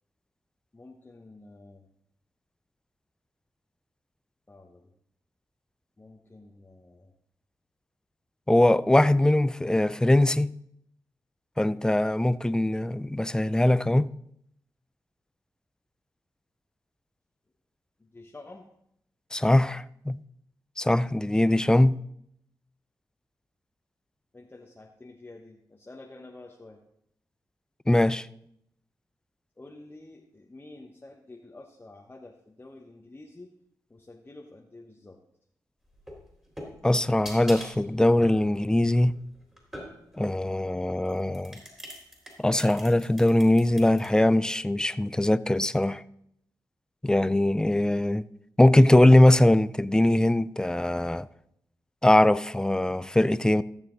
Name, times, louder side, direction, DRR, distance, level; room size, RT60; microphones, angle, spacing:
voice 1, 0.7-1.9 4.5-4.9 6.0-7.1 18.0-18.7 24.3-26.8 29.6-33.5 33.9-35.2, left 2 dB, 25° left, 1.1 m, -49 dB
voice 2, 8.5-10.5 11.6-14.1 19.3-20.2 20.8-22.0 27.9-28.3 36.8-39.2 40.2-41.6 42.4-46.0 47.0-48.2 48.6-51.3 52.0-53.6, left 1 dB, 10° left, 0.4 m, -21 dB
sound 1, 35.9-40.3 41.0-44.1, equal, 10° right, 3.6 m, -43 dB
15.0 x 6.9 x 3.9 m
cardioid pair, 55°, 8 cm